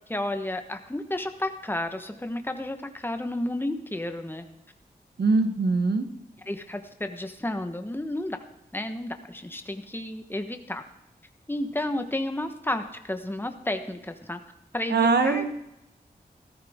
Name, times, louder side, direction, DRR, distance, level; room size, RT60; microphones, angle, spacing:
voice 1, 0.1-4.4 6.5-8.4 8.7-10.8 11.5-14.4 14.7-15.4, left 1 dB, 15° left, 7 dB, 1.2 m, -32 dB
voice 2, 5.2-6.1 14.9-15.5, right 3 dB, 90° right, 8 dB, 1.1 m, -22 dB
14.5 x 13.5 x 3.7 m, 0.88 s
cardioid pair, 50°, 16 cm